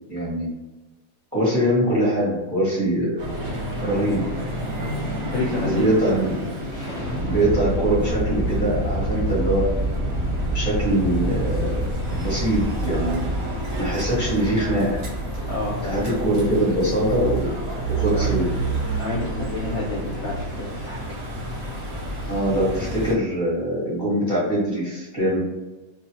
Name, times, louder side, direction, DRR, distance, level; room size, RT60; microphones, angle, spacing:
voice 1, 0.1-0.5 1.3-3.2 3.8-4.3 5.6-6.4 7.2-9.7 10.5-11.9 12.1-13.2 13.8-15.0 15.8-17.5 17.9-18.5 22.2-25.4, right 1 dB, 15° right, -8 dB, 0.8 m, -23 dB
sound 1, 3.2-23.1, right 2 dB, 55° right, 0.8 m, -30 dB
voice 2, 5.2-6.3 15.5-16.1 18.1-18.3 19.0-21.0, left 2 dB, 65° left, -5 dB, 0.7 m, -29 dB
sound 2, 6.7-18.6, right 1 dB, 25° left, 0.9 m, -28 dB
2.5 x 2.2 x 2.7 m, 1.1 s
omnidirectional pair, 1.7 m